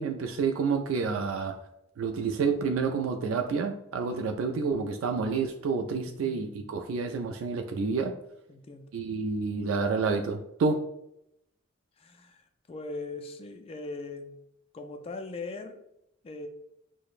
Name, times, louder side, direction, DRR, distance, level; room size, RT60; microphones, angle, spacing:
voice 1, 0.0-1.6 2.0-8.1 8.9-10.8, right 4 dB, 80° right, 5 dB, 0.3 m, -29 dB
voice 2, 6.1-6.7 8.5-8.9 12.0-14.4 14.7-15.8 16.2-16.5, left 3 dB, 30° left, 6 dB, 0.3 m, -40 dB
4.7 x 2.1 x 2.4 m, 0.80 s
head